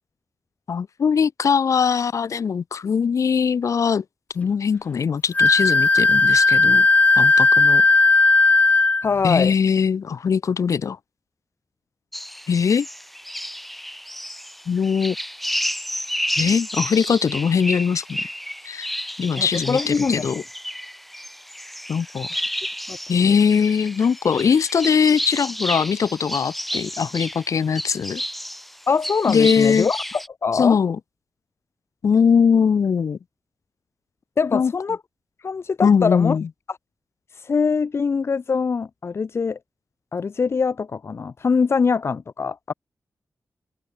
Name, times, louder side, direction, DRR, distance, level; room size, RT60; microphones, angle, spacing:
voice 1, 0.7-4.0 4.3-6.9 7.2-7.8 9.2-11.0 12.5-12.9 14.7-15.2 16.4-18.3 18.7-18.9 19.2-20.4 21.9-22.3 23.1-28.2 29.3-29.9 30.5-31.0 32.0-33.2 34.5-34.7 35.8-36.5, left 6 dB, 70° left, 2.2 m, -21 dB
Wind instrument woodwind instrument, 5.3-9.1, left 3 dB, 25° left, 0.6 m, -15 dB
voice 2, 9.0-9.5 19.4-20.4 22.9-23.3 28.9-30.8 34.4-35.0 35.4-36.4 37.3-39.6 40.1-42.7, left 5 dB, 50° left, 0.9 m, -23 dB
sound 1, 12.1-30.3, equal, ahead, 1.9 m, -31 dB
open air
wide cardioid pair, 115°, 6 cm